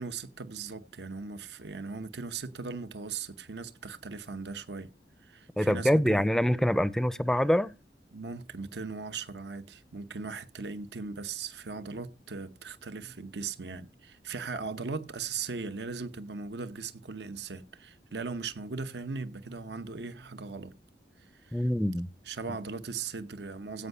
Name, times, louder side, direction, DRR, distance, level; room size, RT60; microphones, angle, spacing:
voice 1, 0.0-4.9 5.2-6.3 8.1-20.7 21.2-21.6 22.2-23.9, right 4 dB, 75° right, 0.9 m, -38 dB
voice 2, 5.6-7.7 21.5-22.1, equal, 5° left, 0.5 m, -25 dB
16.0 x 5.5 x 5.5 m
head